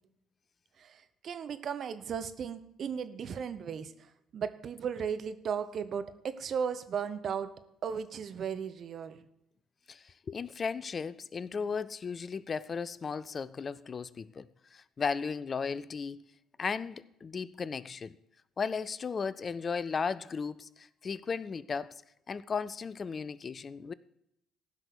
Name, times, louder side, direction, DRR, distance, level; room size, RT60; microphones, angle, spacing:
voice 1, 0.8-7.5 7.8-9.2, right 7 dB, 50° right, 1.0 m, -36 dB
voice 2, 9.9-16.2 16.6-18.2 18.6-22.0 22.3-23.9, left 5 dB, 40° left, 0.5 m, -35 dB
15.5 x 6.1 x 6.8 m
hypercardioid pair, 50°, 0 cm